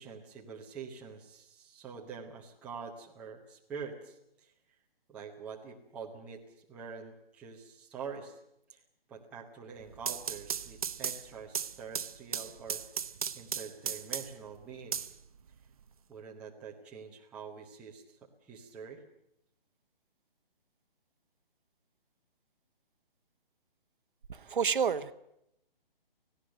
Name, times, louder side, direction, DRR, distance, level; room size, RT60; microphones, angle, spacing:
voice 1, 0.0-4.5 5.1-6.4 6.7-8.4 8.7-8.8 9.1-12.8 13.3-15.2 16.1-19.0, right 6 dB, 5° right, 0.9 m, -45 dB
sound 1, 9.8-14.5 14.9-15.9, right 7 dB, 40° right, 0.8 m, -36 dB
voice 2, 24.3-25.1, right 6 dB, 60° right, 1.2 m, -29 dB
18.5 x 16.5 x 9.0 m
hypercardioid pair, 165°, 29 cm